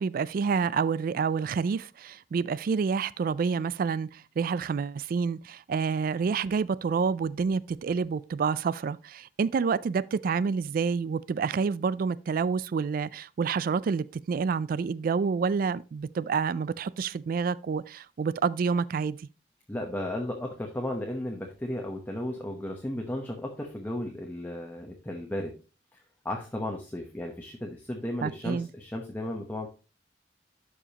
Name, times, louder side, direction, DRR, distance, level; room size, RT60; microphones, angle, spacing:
voice 1, 0.0-19.2 28.2-28.7, right 5 dB, 55° right, 0.3 m, -28 dB
voice 2, 19.7-25.6 26.2-29.7, left 1 dB, 10° left, 0.9 m, -34 dB
12.0 x 4.9 x 2.9 m
head